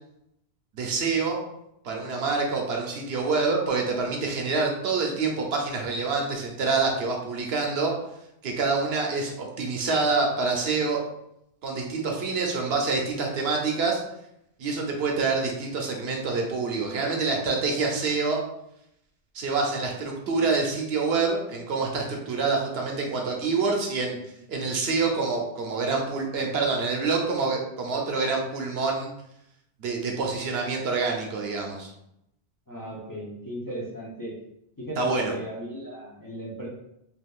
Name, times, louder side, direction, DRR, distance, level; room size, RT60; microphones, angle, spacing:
voice 1, 0.7-1.4 1.8-7.9 8.4-11.0 11.6-14.0 14.6-18.4 19.3-24.2 24.5-29.1 29.8-31.9 35.0-35.3, right 4 dB, 75° right, 1 dB, 0.9 m, -26 dB
voice 2, 32.7-34.3 34.8-36.7, right 1 dB, 25° left, -6 dB, 0.6 m, -36 dB
3.5 x 2.6 x 2.3 m, 0.80 s
omnidirectional pair, 1.1 m